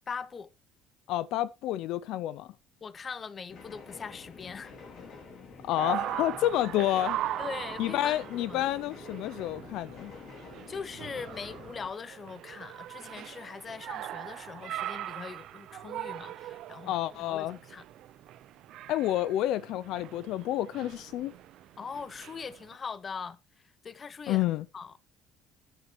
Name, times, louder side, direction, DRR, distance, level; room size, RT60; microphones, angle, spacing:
voice 1, 0.1-0.5 2.8-4.7 7.4-8.7 10.7-17.8 21.8-23.4 23.8-24.5 24.7-24.9, left 5 dB, 25° left, 0.7 m, -41 dB
voice 2, 1.1-2.5 5.6-7.2 7.8-10.1 16.9-17.6 18.9-21.3 24.3-24.7, left 13 dB, 65° left, 0.4 m, -29 dB
sound 1, 3.5-11.9, left 4 dB, 45° left, 3.0 m, -48 dB
sound 2, 5.8-22.8, right 13 dB, 60° right, 0.5 m, -40 dB
13.5 x 9.1 x 3.1 m
cardioid pair, 140°, 0 cm